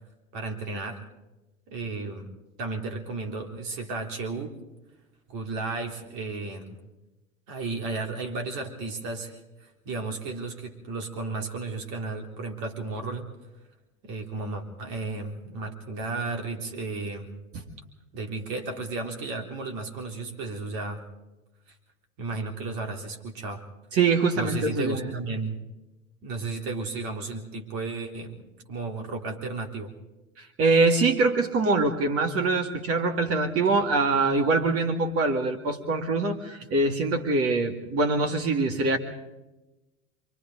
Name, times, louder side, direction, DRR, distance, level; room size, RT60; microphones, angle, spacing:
voice 1, 0.3-1.0 1.7-2.3 2.6-4.5 5.3-6.8 7.5-13.3 14.0-17.3 18.1-21.0 22.2-23.6 24.3-25.6 26.2-29.9, right 3 dB, 50° right, 4 dB, 3.7 m, -34 dB
voice 2, 23.9-25.1 30.4-39.0, right 3 dB, 35° right, 6 dB, 2.2 m, -24 dB
28.5 x 23.5 x 3.9 m, 1.0 s
hypercardioid pair, 90°, 42 cm